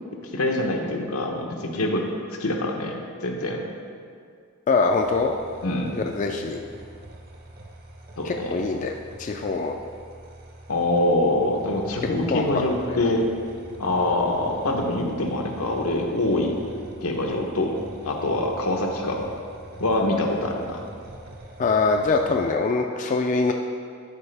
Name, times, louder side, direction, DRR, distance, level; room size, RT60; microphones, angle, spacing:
voice 1, 0.3-2.0 2.4-3.0 3.2-3.6 5.6-6.0 8.2-8.6 10.7-13.3 13.8-16.6 17.0-17.8 18.0-19.2 19.8-20.8, left 1 dB, 85° left, 1 dB, 0.9 m, -24 dB
voice 2, 4.7-5.3 5.9-6.6 8.2-8.9 9.2-9.7 12.3-12.4 12.9-13.0 21.6-23.5, left 4 dB, 35° left, 3 dB, 0.3 m, -23 dB
sound 1, 5.0-22.6, right 1 dB, 45° right, 0.7 m, -43 dB
11.5 x 4.8 x 3.4 m, 2.2 s
head